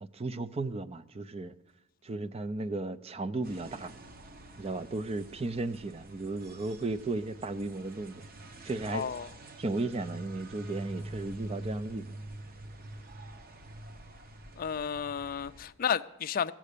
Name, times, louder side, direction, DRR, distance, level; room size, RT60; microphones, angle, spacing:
voice 1, 0.0-1.5 2.0-3.9 4.6-8.2 8.6-9.1 9.6-12.2, right 2 dB, 30° right, 0.5 m, -35 dB
sound 1, 3.4-15.7, right 1 dB, 45° right, 0.9 m, -46 dB
voice 2, 8.9-9.3 14.6-16.5, left 7 dB, 45° left, 0.4 m, -32 dB
16.5 x 7.4 x 6.7 m
head